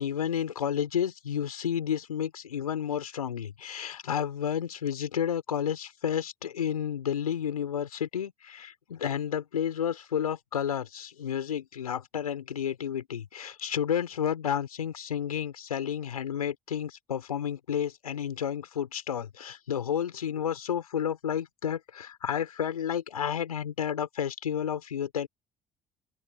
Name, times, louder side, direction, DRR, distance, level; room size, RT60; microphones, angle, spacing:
voice 1, 0.0-25.3, left 9 dB, 85° left, 5.4 m, -31 dB
open air
figure-of-eight pair, 55°, 19 cm